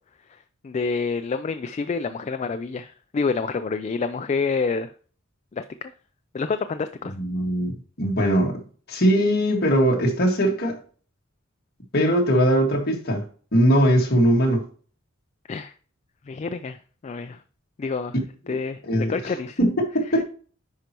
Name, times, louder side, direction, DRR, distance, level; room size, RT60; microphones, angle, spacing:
voice 1, 0.3-4.9 5.5-5.9 6.3-7.2 15.5-15.7 16.2-16.8 17.0-17.4 17.8-18.2 18.5-18.8 19.1-19.6, left 4 dB, 35° left, 0.3 m, -28 dB
voice 2, 7.2-8.6 8.9-10.8 11.9-13.2 13.5-14.6 18.5-20.2, equal, 50° left, 1.8 m, -21 dB
10.5 x 4.5 x 2.9 m
head